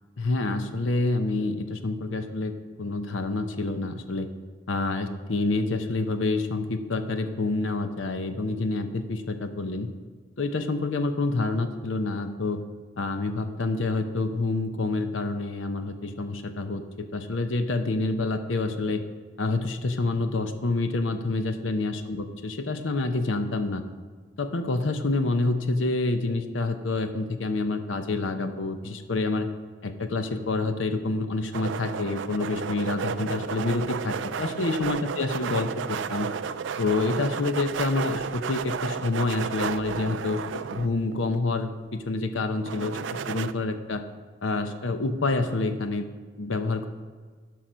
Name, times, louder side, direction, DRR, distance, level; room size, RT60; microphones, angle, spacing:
voice 1, 0.2-2.5 2.8-4.3 4.7-9.9 10.4-12.6 13.0-19.0 19.4-23.8 24.4-29.5 29.8-36.3 36.8-40.4 40.7-43.0 43.3-44.0 44.4-46.1 46.4-46.9, left 3 dB, 90° left, 8 dB, 0.8 m, -27 dB
sound 1, 31.5-41.4 42.7-43.5, right 6 dB, 75° right, 0.4 m, -32 dB
12.0 x 5.9 x 5.1 m, 1.5 s
head